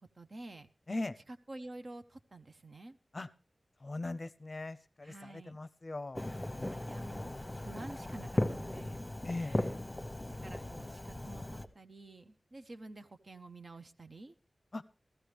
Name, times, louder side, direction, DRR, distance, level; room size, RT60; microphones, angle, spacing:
voice 1, 0.2-0.7 1.3-3.0 5.0-5.6 6.7-9.1 9.4-9.6 10.3-14.4, right 2 dB, 50° right, 8 dB, 0.8 m, -50 dB
voice 2, 3.8-6.8 9.2-9.8 10.1-10.2 10.5-10.7 14.7-14.8, left 2 dB, 40° left, 12 dB, 0.6 m, -41 dB
Fireworks, 6.2-11.7, left 1 dB, 15° left, 1.0 m, -37 dB
15.0 x 14.0 x 3.4 m, 0.35 s
wide cardioid pair, 95°, 0 cm